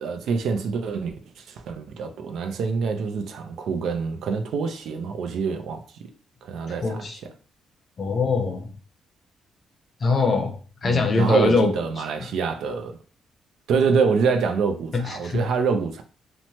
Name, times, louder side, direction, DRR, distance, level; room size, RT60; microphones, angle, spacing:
voice 1, 0.0-6.1 6.4-7.0 10.8-13.0 13.7-16.0, right 5 dB, 75° right, 0.4 m, -26 dB
voice 2, 6.8-7.2 8.0-8.7 10.0-11.7 12.2-12.3 14.9-15.4, left 4 dB, 45° left, 0.7 m, -23 dB
3.0 x 2.1 x 2.8 m
cardioid pair, 90°, 0 cm